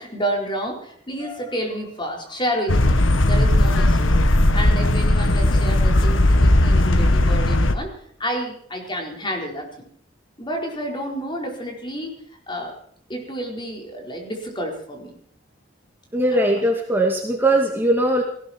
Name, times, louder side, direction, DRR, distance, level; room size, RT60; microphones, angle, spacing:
voice 1, 0.0-7.9 8.2-9.8 10.4-12.1 12.5-12.7 13.1-15.2 16.3-16.7, equal, 25° left, 1 dB, 4.6 m, -30 dB
sound 1, 2.7-7.7, left 1 dB, 85° left, 1.5 m, -17 dB
voice 2, 16.1-18.2, right 1 dB, 10° right, 1 dB, 2.3 m, -20 dB
19.0 x 16.5 x 4.5 m, 0.64 s
head